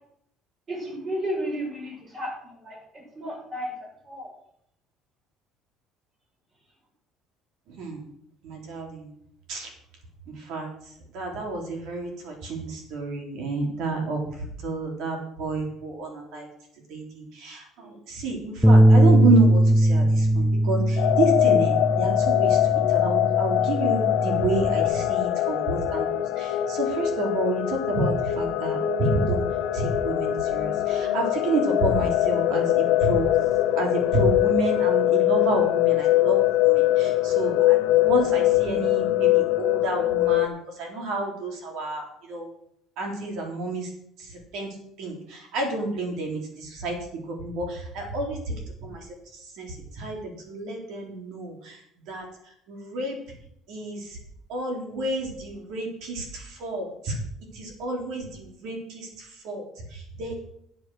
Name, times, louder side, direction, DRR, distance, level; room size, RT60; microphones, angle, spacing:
voice 1, 0.7-2.8 3.2-4.3, equal, 30° right, -1 dB, 5.9 m, -33 dB
voice 2, 7.7-8.0 8.4-9.1 9.5-9.7 10.3-10.7 11.1-14.3 14.6-16.5 16.9-29.5 29.7-33.3 33.8-42.5 43.0-43.9 44.2-47.0 47.3-48.5 48.8-49.1 49.3-51.8 52.1-52.2 52.7-53.2 53.7-54.2 54.5-57.2 57.5-60.4, right 2 dB, 70° right, 2 dB, 3.9 m, -30 dB
Bass guitar, 18.6-24.9, right 1 dB, ahead, 0.4 m, -20 dB
sound 1, 21.0-40.5, left 14 dB, 75° left, 0.8 m, -23 dB
10.5 x 7.9 x 6.4 m, 0.72 s
cardioid pair, 135°, 0 cm